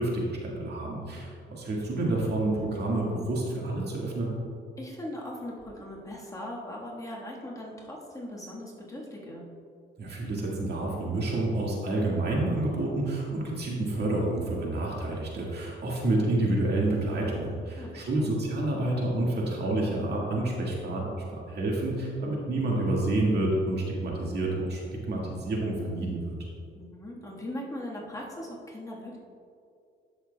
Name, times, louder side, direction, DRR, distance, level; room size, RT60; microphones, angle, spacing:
voice 1, 0.0-4.3 10.0-24.8 25.1-26.4, right 2 dB, 55° right, -3 dB, 1.8 m, -29 dB
voice 2, 4.8-9.4 17.8-18.4 26.7-29.2, left 1 dB, 15° left, -4 dB, 1.5 m, -39 dB
12.0 x 6.1 x 2.3 m, 2.4 s
cardioid pair, 90°, 20 cm